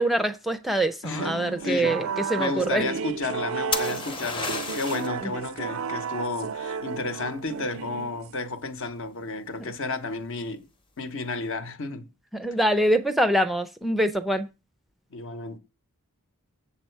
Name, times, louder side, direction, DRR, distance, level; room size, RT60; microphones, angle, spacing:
voice 1, 0.0-2.8 12.3-14.5, right 1 dB, ahead, 0.4 m, -24 dB
voice 2, 1.0-2.0 2.4-10.7 11.0-12.1 15.1-15.6, left 3 dB, 60° left, 0.9 m, -32 dB
sound 1, 1.1-8.5, right 6 dB, 65° right, 0.4 m, -33 dB
sound 2, 3.7-5.2 8.9-9.3, left 4 dB, 20° left, 0.8 m, -31 dB
7.3 x 7.0 x 4.5 m
head